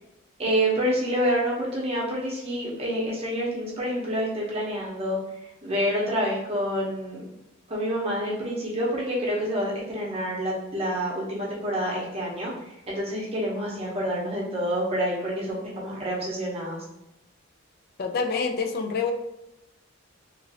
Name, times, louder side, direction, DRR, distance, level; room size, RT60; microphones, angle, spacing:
voice 1, 0.4-5.2 5.6-7.2 7.7-12.5 12.9-16.8, equal, 30° right, -4 dB, 0.8 m, -27 dB
voice 2, 18.0-19.1, left 5 dB, 45° left, 5 dB, 0.4 m, -26 dB
2.9 x 2.5 x 2.8 m, 0.91 s
head